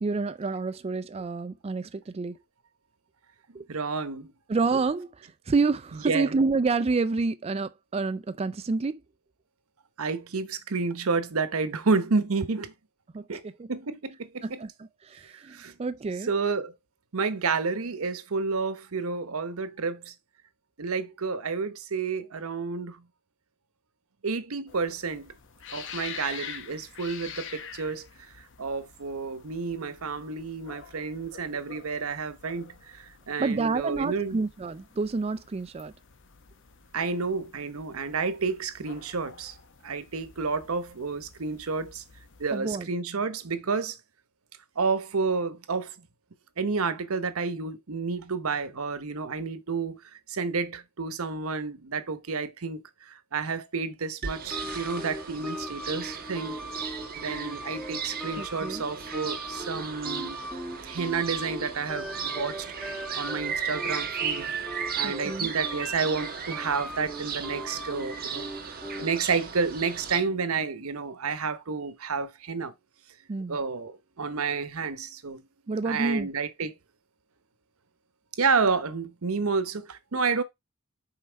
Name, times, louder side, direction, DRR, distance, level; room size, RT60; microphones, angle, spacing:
voice 1, 0.0-2.4 3.5-3.6 4.5-5.1 5.5-9.0 13.1-13.3 13.6-13.7 14.4-16.3 33.4-35.9 42.5-42.9 58.4-58.8 65.0-65.5 73.3-73.6 75.7-76.3, right 4 dB, 30° right, 0.4 m, -28 dB
voice 2, 3.7-4.3 6.0-6.3 10.0-12.7 13.3-13.4 13.7-14.6 15.2-15.7 16.3-16.7 17.1-20.1 20.8-23.0 24.2-25.3 25.7-28.1 28.6-34.4 36.9-39.6 39.8-42.0 42.4-44.0 44.8-46.0 46.6-56.7 57.1-60.4 60.8-62.7 63.2-64.5 65.0-68.5 69.0-72.7 73.5-75.4 75.8-76.7 78.4-80.4, right 4 dB, 90° right, 0.9 m, -30 dB
sound 1, 24.7-42.6, left 7 dB, 60° left, 0.8 m, -47 dB
sound 2, 54.2-70.2, right 6 dB, 45° right, 1.4 m, -36 dB
sound 3, 54.5-69.3, right 1 dB, ahead, 1.3 m, -39 dB
5.8 x 4.2 x 4.5 m
head